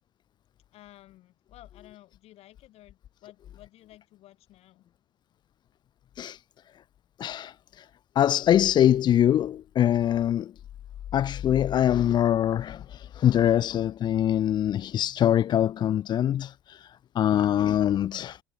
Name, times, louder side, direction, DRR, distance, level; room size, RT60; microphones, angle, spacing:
voice 1, 0.7-4.9, left 15 dB, 50° left, 6.8 m, -53 dB
voice 2, 7.2-7.9 8.2-10.5 11.1-18.4, left 11 dB, 35° left, 0.4 m, -24 dB
figure-of-eight pair, 60°, 13 cm